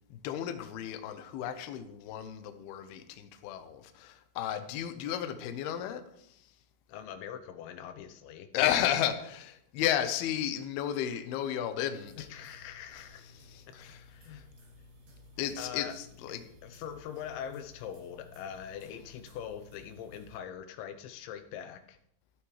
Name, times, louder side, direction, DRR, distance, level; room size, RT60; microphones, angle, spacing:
voice 1, 0.1-6.0 8.5-12.3 12.9-13.1 13.3-14.0 14.3-14.4 15.4-16.5, left 10 dB, 75° left, 2.6 m, -33 dB
voice 2, 6.9-8.5 12.2-13.3 13.9-14.4 15.6-15.9 16.3-16.4 16.6-22.0, left 9 dB, 90° left, 3.1 m, -43 dB
sound 1, 11.9-20.4, left 2 dB, 65° right, 4.5 m, -56 dB
15.0 x 12.5 x 3.2 m
omnidirectional pair, 5.1 m